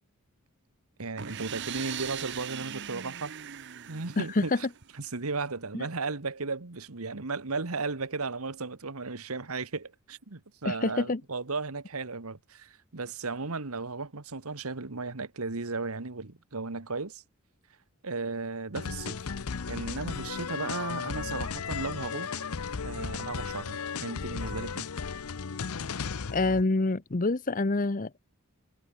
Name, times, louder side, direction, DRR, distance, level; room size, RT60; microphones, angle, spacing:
voice 1, 1.0-3.3 3.9-4.7 4.9-17.2 18.0-19.2 19.7-22.5 22.8-24.9, right 3 dB, 75° right, 1.5 m, -35 dB
sound 1, 1.2-4.9, right 9 dB, 55° right, 0.8 m, -39 dB
voice 2, 10.6-11.2 26.3-28.2, left 2 dB, 35° left, 0.8 m, -27 dB
sound 2, 18.7-26.6, left 5 dB, 80° left, 0.7 m, -35 dB
head